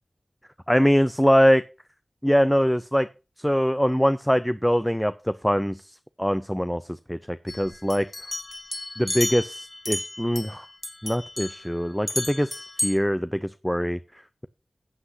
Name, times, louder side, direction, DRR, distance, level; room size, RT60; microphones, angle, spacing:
voice 1, 0.7-1.6 2.2-3.1 3.4-5.9 6.2-8.1 9.0-10.7 11.0-12.6 12.8-14.0, equal, 5° left, 12 dB, 0.5 m, -23 dB
sound 1, 7.5-10.6 10.8-11.7 12.1-12.9, left 1 dB, 35° left, 1.4 m, -32 dB
14.0 x 7.7 x 2.7 m, 0.30 s
wide cardioid pair, 55°, 0 cm